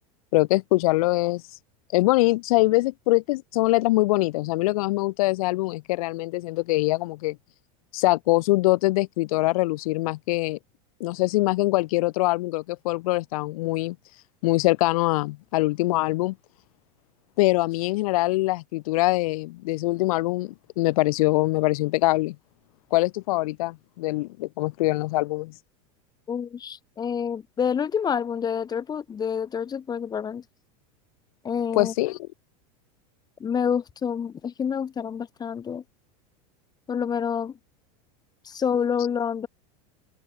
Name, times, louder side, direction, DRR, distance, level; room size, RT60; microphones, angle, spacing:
voice 1, 0.3-1.4 1.9-7.4 7.9-10.6 11.0-14.0 14.4-16.3 17.4-22.4 22.9-25.5 31.7-32.2, left 20 dB, 70° left, 1.5 m, -23 dB
voice 2, 26.3-30.4 31.4-31.9 33.4-35.8 36.9-37.6 38.4-39.5, left 7 dB, 20° left, 7.7 m, -28 dB
open air
supercardioid pair, 145°, 19 cm